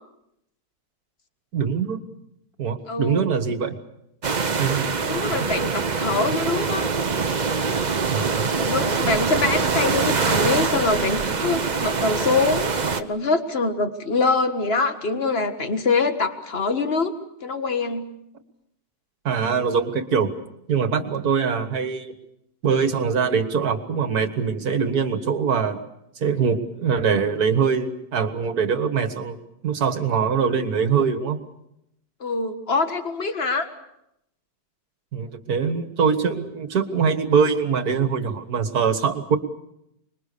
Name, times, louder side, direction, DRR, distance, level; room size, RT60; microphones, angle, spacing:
voice 1, 1.5-2.0 2.6-3.8 4.6-4.9 5.4-5.5 8.1-8.5 19.3-20.3 20.7-22.1 22.6-25.8 26.2-29.4 29.6-31.4 35.1-39.4, right 6 dB, 60° right, 9 dB, 2.0 m, -23 dB
voice 2, 2.9-3.3 5.0-6.9 8.6-17.2 17.4-18.1 32.2-33.7, left 3 dB, 35° left, 8 dB, 1.8 m, -24 dB
sound 1, 4.2-13.0, right 5 dB, 35° right, 0.7 m, -24 dB
25.5 x 22.0 x 6.8 m, 0.80 s
omnidirectional pair, 1.9 m